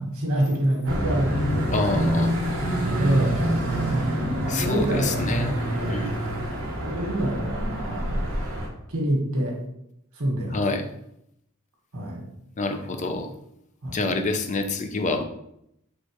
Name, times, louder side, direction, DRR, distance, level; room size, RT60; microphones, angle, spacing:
voice 1, 0.0-2.1 3.0-3.4 4.4-6.1 6.8-8.3 8.9-9.6 10.1-10.6 11.9-12.2 13.8-14.0, right 1 dB, 80° right, -2 dB, 1.4 m, -26 dB
sound 1, 0.9-8.7, right 1 dB, 65° right, 1.2 m, -26 dB
voice 2, 1.7-2.3 4.5-5.5 5.9-6.1 10.5-10.9 12.6-13.3 13.9-15.2, left 3 dB, 35° left, 6 dB, 0.4 m, -27 dB
4.5 x 3.3 x 3.0 m, 0.78 s
head